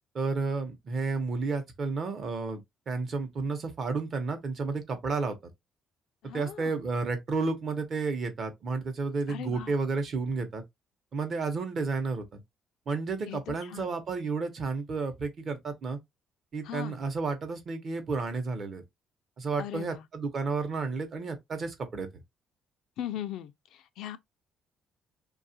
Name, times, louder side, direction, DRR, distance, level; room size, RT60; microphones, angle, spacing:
voice 1, 0.1-5.4 6.2-10.6 11.1-12.4 12.9-16.0 16.5-18.8 19.4-22.1, right 4 dB, 40° right, 0.8 m, -31 dB
voice 2, 6.2-6.8 9.3-9.7 13.3-13.9 16.6-17.0 19.6-20.1 23.0-24.2, left 11 dB, 80° left, 0.4 m, -39 dB
2.7 x 2.4 x 2.7 m
cardioid pair, 130°, 0 cm